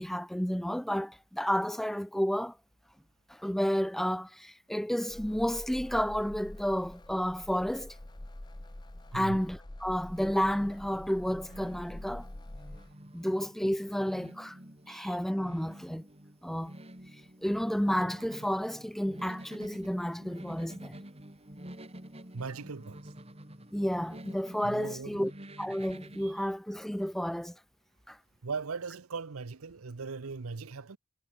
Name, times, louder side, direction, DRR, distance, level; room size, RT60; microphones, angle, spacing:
voice 1, 0.0-2.6 3.3-8.0 9.1-12.3 13.1-14.6 14.9-16.0 16.4-16.7 17.4-21.0 23.7-25.3 25.6-27.6 28.1-28.2, equal, ahead, 0.4 m, -31 dB
sound 1, 5.1-12.9, left 1 dB, 20° left, 0.8 m, -46 dB
voice 2, 9.1-9.4 14.9-15.2 22.3-23.1 24.6-25.3 26.2-26.3 28.4-31.0, right 4 dB, 75° right, 0.8 m, -39 dB
sound 2, 9.9-26.3, right 1 dB, 30° right, 4.2 m, -49 dB
head